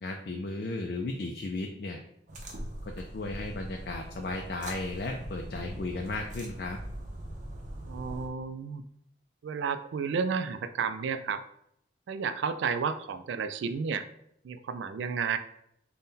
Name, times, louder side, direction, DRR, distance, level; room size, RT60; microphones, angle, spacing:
voice 1, 0.0-2.0 2.8-6.8, left 2 dB, 55° left, 2 dB, 0.4 m, -35 dB
sound 1, 2.3-8.3, right 1 dB, 40° right, 0.6 m, -41 dB
voice 2, 7.9-8.8 9.4-11.4 12.1-14.1 14.4-15.4, right 6 dB, 85° right, 10 dB, 0.3 m, -32 dB
4.0 x 2.2 x 3.7 m, 0.74 s
head